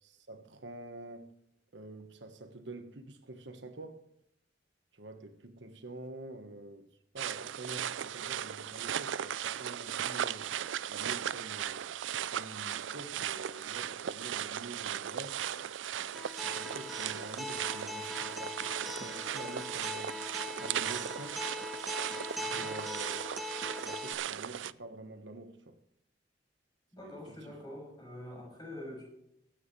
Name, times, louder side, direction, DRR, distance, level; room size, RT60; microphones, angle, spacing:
voice 1, 0.0-1.3 1.7-4.0 4.9-6.9 7.1-10.5 10.9-11.9 12.3-15.4 16.3-20.2 20.5-21.4 22.3-23.2 23.8-25.8 27.0-27.6, right 2 dB, 70° right, 1.4 m, -47 dB
sound 1, 7.2-24.7, right 10 dB, 85° right, 0.4 m, -37 dB
Acoustic guitar, 16.1-24.1, left 2 dB, ahead, 1.3 m, -41 dB
voice 2, 26.9-29.0, left 1 dB, 20° left, 6.7 m, -45 dB
21.0 x 9.4 x 3.3 m
head